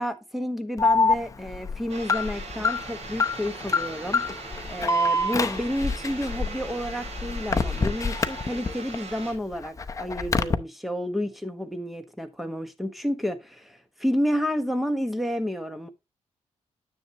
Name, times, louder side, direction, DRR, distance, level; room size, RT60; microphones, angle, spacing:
voice 1, 0.0-4.3 4.7-15.9, equal, ahead, 1.2 m, -30 dB
Alarm, 0.8-8.9 9.3-10.5, left 3 dB, 25° left, 0.7 m, -26 dB
sound 1, 1.9-9.3, right 3 dB, 60° right, 4.7 m, -40 dB
10.0 x 7.2 x 2.9 m
cardioid pair, 120°, 12 cm